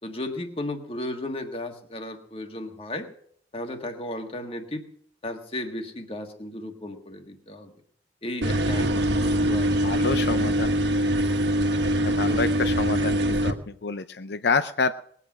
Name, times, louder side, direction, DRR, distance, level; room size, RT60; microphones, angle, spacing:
voice 1, 0.0-3.1 3.5-4.9 5.2-7.7 8.2-9.9, left 1 dB, 30° left, 5 dB, 1.6 m, -35 dB
sound 1, 8.4-13.5, right 1 dB, 75° right, 1.4 m, -23 dB
voice 2, 9.8-10.7 12.0-15.0, left 4 dB, 70° left, 10 dB, 0.5 m, -28 dB
20.0 x 8.4 x 6.1 m, 0.65 s
head